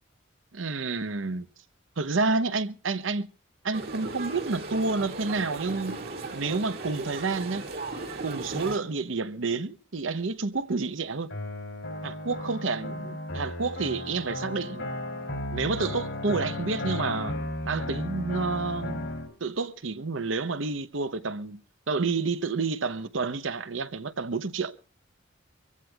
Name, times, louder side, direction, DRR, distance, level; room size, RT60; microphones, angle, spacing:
voice 1, 0.5-1.5 2.0-3.3 3.6-6.0 6.3-7.6 8.2-11.3 12.0-12.9 13.3-14.9 15.5-17.4 17.6-19.1 19.4-21.6 21.9-24.7, right 4 dB, 80° right, 0.8 m, -29 dB
sound 1, 3.7-8.8, right 3 dB, 50° right, 2.2 m, -37 dB
sound 2, 11.3-19.3, left 1 dB, 70° left, 2.9 m, -34 dB
25.0 x 15.5 x 2.4 m
head